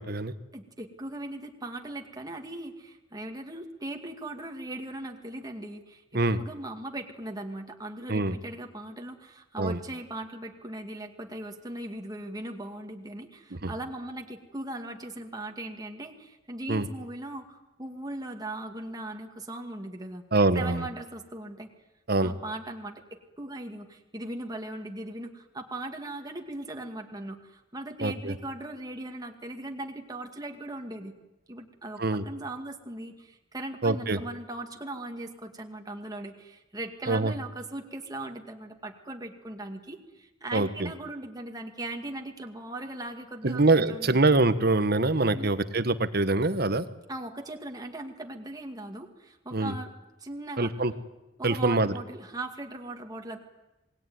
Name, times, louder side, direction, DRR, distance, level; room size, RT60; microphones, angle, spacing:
voice 1, 0.0-0.3 6.1-6.4 8.1-8.4 9.6-9.8 13.5-13.7 16.7-16.9 20.3-20.9 22.1-22.3 28.0-28.3 32.0-32.2 33.8-34.2 37.1-37.3 40.5-40.9 43.4-46.9 49.5-49.7 50.6-50.9 51.4-51.9, right 2 dB, 55° right, 12 dB, 1.4 m, -24 dB
voice 2, 0.5-6.0 6.4-20.2 20.6-21.7 22.2-23.0 23.4-31.1 31.5-32.0 32.3-43.6 43.9-44.2 45.3-45.5 47.1-49.9 50.2-50.7 51.4-53.4, right 1 dB, 20° right, 3 dB, 2.2 m, -39 dB
27.5 x 20.0 x 9.5 m, 1.0 s
head